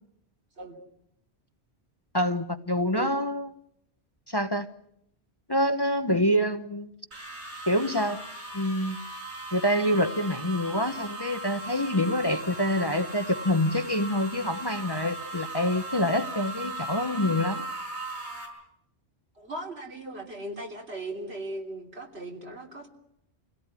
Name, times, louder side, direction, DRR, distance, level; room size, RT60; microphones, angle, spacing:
voice 1, 2.1-3.5 4.3-4.7 5.5-6.9 7.7-8.2 8.5-9.0 9.5-17.6, left 1 dB, 25° left, 8 dB, 0.9 m, -26 dB
sound 1, 7.1-18.5, right 2 dB, 85° right, 6.5 m, -38 dB
voice 2, 19.4-22.9, right 2 dB, 70° right, 2 dB, 3.5 m, -38 dB
26.0 x 17.5 x 9.7 m, 0.77 s
omnidirectional pair, 1.1 m